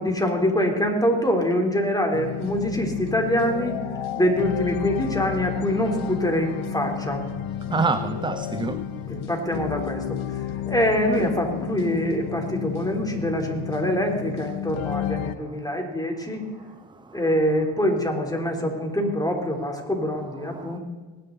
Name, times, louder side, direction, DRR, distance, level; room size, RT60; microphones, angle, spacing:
voice 1, 0.0-3.8 4.2-7.2 9.1-16.4 17.1-20.8, equal, 10° left, 1 dB, 3.4 m, -25 dB
sound 1, 2.1-15.3, left 10 dB, 85° left, 0.9 m, -32 dB
voice 2, 7.7-8.8 16.9-17.2 20.4-20.8, right 4 dB, 10° right, 12 dB, 0.5 m, -27 dB
19.0 x 10.5 x 4.0 m, 1.4 s
supercardioid pair, 50°, 48 cm